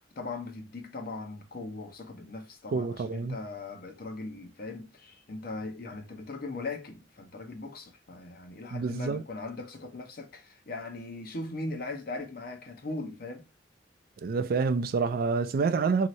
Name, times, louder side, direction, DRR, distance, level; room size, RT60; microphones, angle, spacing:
voice 1, 0.2-13.4 15.6-15.8, left 2 dB, 55° left, 0.8 m, -39 dB
voice 2, 2.7-3.4 8.7-9.2 14.2-16.1, right 4 dB, 55° right, 0.4 m, -27 dB
3.1 x 2.8 x 2.6 m
head